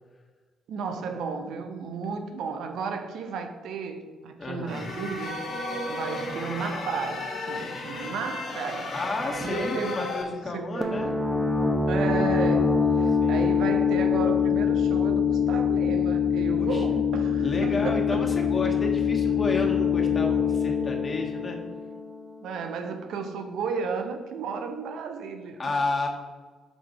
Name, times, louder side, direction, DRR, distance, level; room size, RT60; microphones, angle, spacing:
voice 1, 0.7-8.9 9.4-10.0 10.5-11.1 11.9-18.2 22.4-25.8, right 5 dB, 70° right, 0.7 m, -33 dB
voice 2, 4.4-4.9 8.9-11.1 13.1-13.6 16.4-17.0 17.4-21.6 25.6-26.1, left 2 dB, 40° left, 1.4 m, -31 dB
sound 1, 4.7-10.2, left 2 dB, 65° left, 1.3 m, -34 dB
sound 2, 10.8-22.3, left 6 dB, 20° right, 0.9 m, -24 dB
6.1 x 3.8 x 4.7 m
hypercardioid pair, 50°, 0 cm